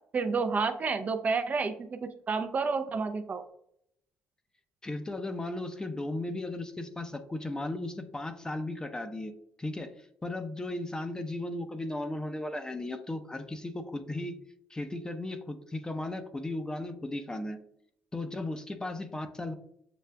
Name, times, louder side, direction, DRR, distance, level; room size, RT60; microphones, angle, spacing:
voice 1, 0.1-3.4, right 4 dB, 35° right, 8 dB, 0.4 m, -30 dB
voice 2, 4.8-9.3 9.6-9.9 10.2-14.4 14.7-17.6 18.1-19.5, left 2 dB, 15° left, 8 dB, 0.6 m, -36 dB
6.8 x 2.3 x 2.2 m, 0.72 s
supercardioid pair, 75°, 5 cm